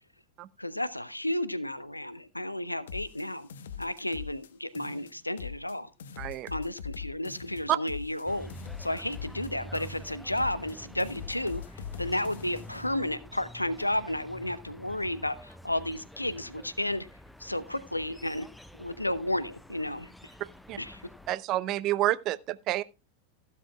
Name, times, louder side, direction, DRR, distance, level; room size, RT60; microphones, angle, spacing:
voice 1, 0.6-3.5 3.8-5.9 6.5-8.5 8.8-11.6 12.0-17.1 17.4-18.5 18.8-20.1 20.8-21.0, left 1 dB, 85° left, 0.8 m, -32 dB
sound 1, 2.9-4.5 4.7-5.7 6.0-9.5 9.7-10.7 11.0-12.9, left 7 dB, 60° left, 1.2 m, -42 dB
voice 2, 6.2-6.5 20.7-20.8 21.3-22.8, right 15 dB, 35° right, 0.7 m, -29 dB
sound 2, 8.3-21.4, equal, ahead, 0.8 m, -48 dB
15.5 x 12.0 x 2.2 m
figure-of-eight pair, 90°, 0 cm